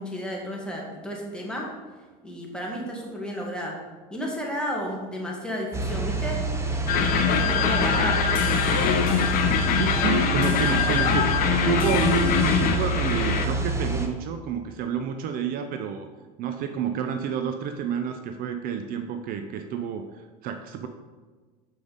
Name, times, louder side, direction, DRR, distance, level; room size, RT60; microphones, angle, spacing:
voice 1, 0.0-1.7 2.2-3.8 4.1-6.4 6.9-8.3, equal, 5° left, -2 dB, 1.8 m, -32 dB
sound 1, 5.7-14.1, right 2 dB, 15° right, 0.9 m, -27 dB
sound 2, 6.9-13.5, left 7 dB, 50° left, 0.7 m, -23 dB
voice 2, 9.7-11.3 11.6-16.1 16.4-20.9, right 7 dB, 50° right, 6 dB, 0.6 m, -29 dB
6.6 x 5.3 x 4.0 m, 1.4 s
supercardioid pair, 100°, 19 cm